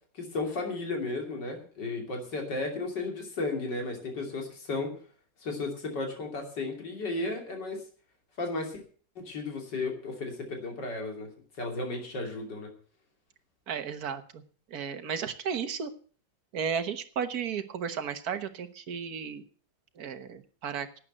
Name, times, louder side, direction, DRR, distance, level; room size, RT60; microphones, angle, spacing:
voice 1, 0.2-4.9 5.4-7.8 8.4-8.8 9.3-11.3 11.6-12.7, left 3 dB, 80° left, 3 dB, 3.4 m, -34 dB
voice 2, 13.7-14.4 14.7-15.9 16.5-19.4 20.0-20.9, right 7 dB, 60° right, 9 dB, 1.6 m, -34 dB
11.5 x 8.8 x 7.9 m, 0.43 s
omnidirectional pair, 1.9 m